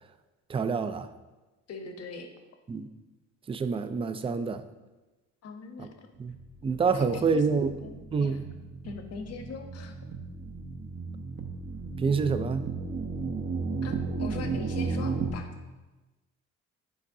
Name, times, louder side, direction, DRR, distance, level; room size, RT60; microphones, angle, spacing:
voice 1, 0.5-1.1 2.7-2.9 3.5-4.6 5.8-5.9 6.2-6.3 6.6-7.7 8.1-8.4 12.0-12.7, right 5 dB, 20° right, 11 dB, 0.3 m, -27 dB
voice 2, 1.7-2.3 5.4-6.1 6.9-8.4 8.8-9.9 13.8-15.5, left 4 dB, 55° left, 5 dB, 0.9 m, -41 dB
sound 1, 6.3-15.3, right 4 dB, 40° right, 0.7 m, -34 dB
8.4 x 4.5 x 2.6 m, 1.2 s
cardioid pair, 90°, 30 cm